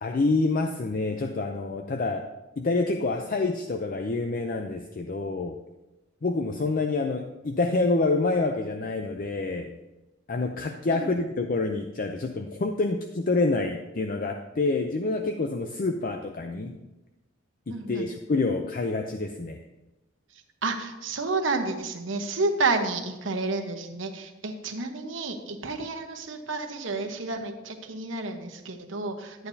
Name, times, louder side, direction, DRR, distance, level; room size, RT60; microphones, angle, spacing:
voice 1, 0.0-2.2 2.6-5.6 6.2-9.8 10.3-16.8 17.7-19.6, left 3 dB, 45° left, 5 dB, 0.5 m, -27 dB
voice 2, 17.7-18.1 20.6-29.5, right 3 dB, 75° right, 5 dB, 1.1 m, -30 dB
11.5 x 8.7 x 2.8 m, 1.0 s
head